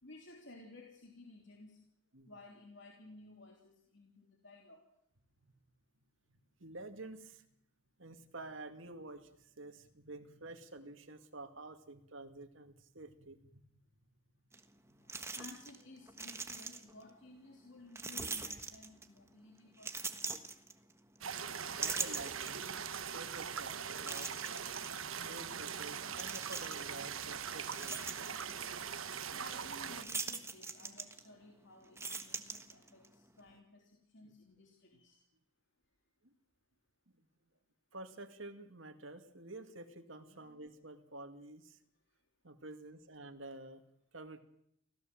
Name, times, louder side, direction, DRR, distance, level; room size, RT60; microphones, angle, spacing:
voice 1, 0.0-1.8 2.3-4.8 15.0-20.4 29.3-35.2, left 2 dB, 60° left, 1 dB, 3.1 m, -56 dB
voice 2, 6.6-7.5 8.0-13.6 21.6-24.5 25.2-28.0 34.2-34.3 36.2-36.3 37.9-41.8 42.4-43.8 44.1-44.4, right 2 dB, 70° right, 6 dB, 2.3 m, -50 dB
sound 1, 14.5-14.6 15.1-15.8 16.1-17.0 18.0-19.2 19.8-21.2 21.6-22.9 23.4-23.5 24.0-24.9 26.1-27.0 27.4-28.6 30.0-31.5 31.8-33.1, right 4 dB, 15° right, 1.3 m, -42 dB
sound 2, 21.2-30.0, right 7 dB, 85° right, 1.3 m, -41 dB
25.0 x 16.5 x 7.7 m, 0.74 s
head